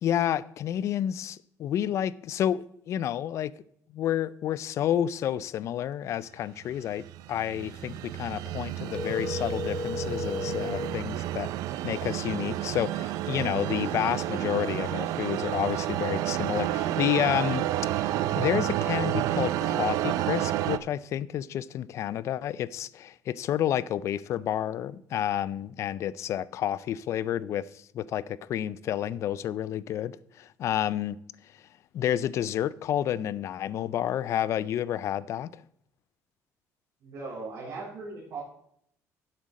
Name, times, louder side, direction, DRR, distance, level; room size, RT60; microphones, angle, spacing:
voice 1, 0.0-3.5 3.9-11.5 11.8-17.7 18.0-27.7 27.9-31.2 31.9-35.5, left 11 dB, 50° left, 0.4 m, -30 dB
sound 1, 6.7-20.8, right 13 dB, 75° right, 0.5 m, -30 dB
sound 2, 8.9-11.0, left 3 dB, 15° left, 0.8 m, -33 dB
voice 2, 37.0-38.4, right 3 dB, 60° right, 3.8 m, -38 dB
11.5 x 7.6 x 4.1 m
cardioid pair, 140°, 6 cm